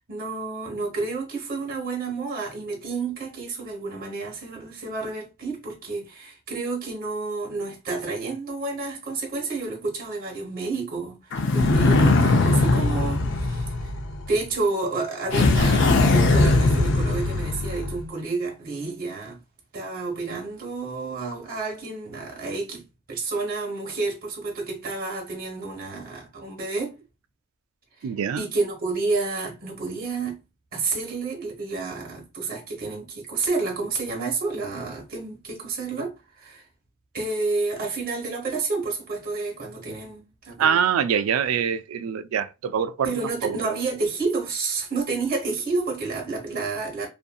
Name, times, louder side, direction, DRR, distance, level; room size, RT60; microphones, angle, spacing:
voice 1, 0.0-13.9 14.3-19.4 19.7-22.8 23.1-26.9 28.0-28.1 28.4-30.4 30.7-36.6 37.1-40.8 43.0-47.1, right 3 dB, 45° right, 1.0 m, -30 dB
sound 1, 11.3-14.4 15.3-18.0, left 2 dB, 60° left, 0.5 m, -20 dB
voice 2, 28.0-28.4 40.6-43.1 43.4-43.6, right 7 dB, 85° right, 0.3 m, -24 dB
2.6 x 2.6 x 2.3 m
head